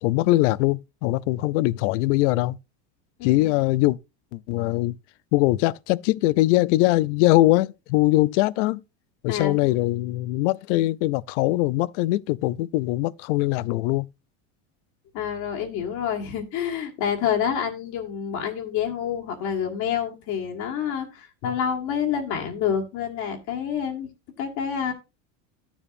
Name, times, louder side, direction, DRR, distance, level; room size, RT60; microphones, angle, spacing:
voice 1, 0.0-2.6 3.2-4.0 4.3-5.0 5.3-8.8 9.2-14.1, left 18 dB, 80° left, 0.5 m, -22 dB
voice 2, 3.2-3.5 9.3-9.7 15.1-24.1 24.4-24.9, left 8 dB, 55° left, 1.7 m, -28 dB
12.0 x 7.1 x 2.5 m
supercardioid pair, 145°, 36 cm